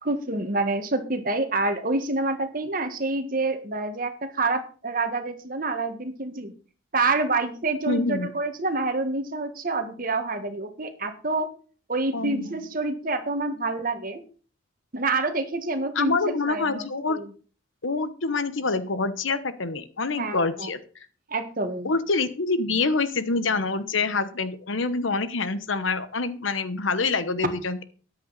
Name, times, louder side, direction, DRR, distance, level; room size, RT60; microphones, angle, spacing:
voice 1, 0.0-6.5 6.9-11.5 11.9-14.2 14.9-17.3 20.2-20.7 21.3-21.9, right 3 dB, 45° right, 7 dB, 1.6 m, -27 dB
voice 2, 7.9-8.3 12.1-12.6 15.9-17.2 17.8-20.8 21.8-27.8, left 3 dB, 80° left, 12 dB, 1.1 m, -26 dB
13.5 x 10.0 x 4.1 m, 0.40 s
head